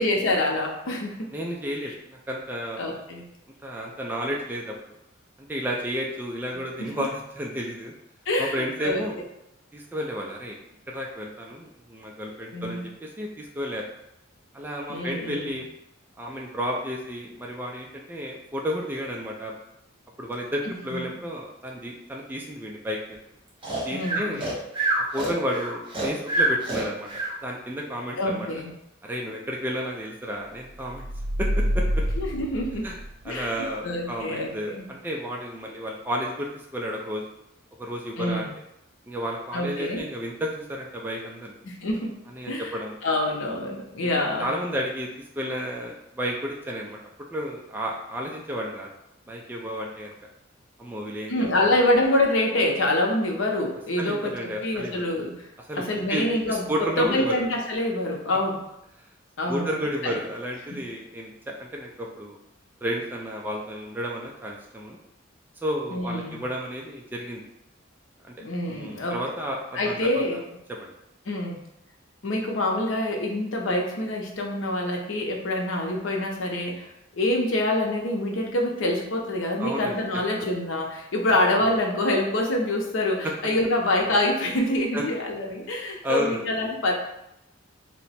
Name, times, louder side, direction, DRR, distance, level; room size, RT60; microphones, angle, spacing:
voice 1, 0.0-1.3 2.8-3.2 6.8-6.9 8.3-9.0 12.5-12.9 14.9-15.6 20.6-21.0 23.9-24.4 28.2-28.7 32.2-32.9 33.3-34.9 38.2-38.5 39.5-40.1 41.6-42.2 42.5-42.7 43.0-44.5 51.3-55.4 55.8-58.6 59.4-60.2 60.7-60.8 65.9-66.4 68.4-69.2 69.7-70.4 71.3-71.6 72.2-76.9 77.2-86.9, left 1 dB, 80° left, 1 dB, 0.7 m, -26 dB
voice 2, 1.3-3.0 3.6-4.7 5.4-7.9 8.4-9.2 9.7-10.6 10.9-13.8 14.5-15.7 16.2-19.5 20.2-23.2 23.8-24.5 25.0-27.1 27.4-28.5 29.0-31.0 31.4-31.8 32.8-33.0 33.2-37.2 37.8-38.5 39.1-41.6 42.3-43.0 44.0-45.1 45.4-47.0 47.3-48.9 49.3-50.1 50.8-51.8 54.0-55.0 55.6-55.8 56.1-57.4 59.5-62.4 62.8-65.0 65.6-67.4 68.3-68.4 68.7-70.0 70.8-70.9 79.6-80.2 84.9-85.0 86.0-86.4, equal, 10° right, -1 dB, 0.3 m, -32 dB
Breathing, 23.6-27.3, right 2 dB, 25° right, 1.0 m, -26 dB
sound 1, 30.8-33.4, equal, 80° right, 0.4 m, -27 dB
2.8 x 2.1 x 4.1 m, 0.84 s
head